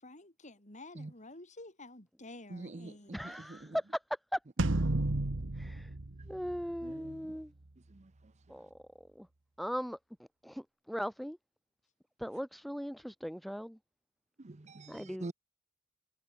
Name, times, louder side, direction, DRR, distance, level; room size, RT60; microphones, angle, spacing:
voice 1, 0.0-3.2, left 2 dB, 35° left, 5.6 m, -51 dB
voice 2, 2.5-3.8 4.9-5.1 6.8-7.4 7.9-8.1 14.4-15.3, right 2 dB, 35° right, 0.7 m, -46 dB
voice 3, 3.1-4.0 4.3-4.4 5.6-5.9 6.3-7.5 8.5-8.7 9.0-9.3 9.6-10.0 10.4-11.4 12.2-13.8 14.9-15.3, equal, ahead, 2.2 m, -38 dB
sound 1, 4.6-7.1, right 2 dB, 65° right, 1.3 m, -32 dB
head